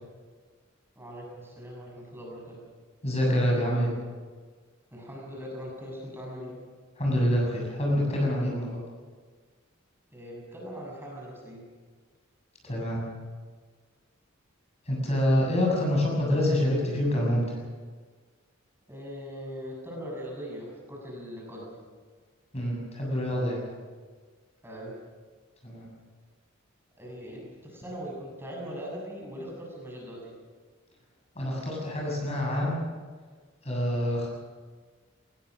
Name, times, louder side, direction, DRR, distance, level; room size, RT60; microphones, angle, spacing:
voice 1, 1.0-2.6 4.9-6.6 10.1-11.7 18.9-21.7 24.6-24.9 27.0-30.4, equal, 10° right, -3 dB, 7.3 m, -40 dB
voice 2, 3.0-3.9 7.0-8.8 12.6-13.0 14.9-17.6 22.5-23.6 25.6-25.9 31.4-32.9 33.6-34.3, equal, 30° left, -2 dB, 7.3 m, -26 dB
22.0 x 21.0 x 6.4 m, 1.5 s
head